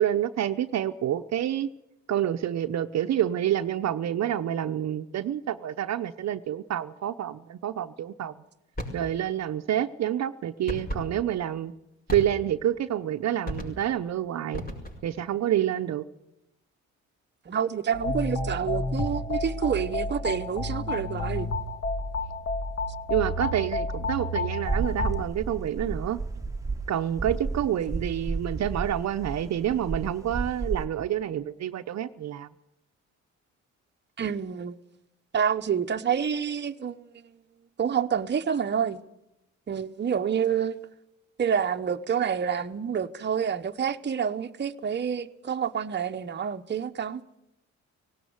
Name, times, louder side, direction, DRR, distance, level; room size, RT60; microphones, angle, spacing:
voice 1, 0.0-1.7 2.1-8.3 8.9-11.7 12.1-14.6 15.0-16.0 23.1-26.2 26.9-32.5, right 11 dB, 60° right, 0.8 m, -28 dB
sound 1, 8.7-9.1 10.7-11.1 12.1-12.6 13.5-13.9 14.5-15.1, equal, 30° left, 6.0 m, -35 dB
voice 2, 17.5-21.5 34.2-34.8 35.3-37.0 37.8-39.0 39.7-40.8 41.4-47.2, right 7 dB, 35° right, 1.0 m, -28 dB
sound 2, 17.9-25.2, left 2 dB, 50° left, 2.4 m, -30 dB
sound 3, 24.6-30.8, right 3 dB, 10° right, 1.3 m, -32 dB
17.5 x 17.5 x 9.5 m
cardioid pair, 90°, 30 cm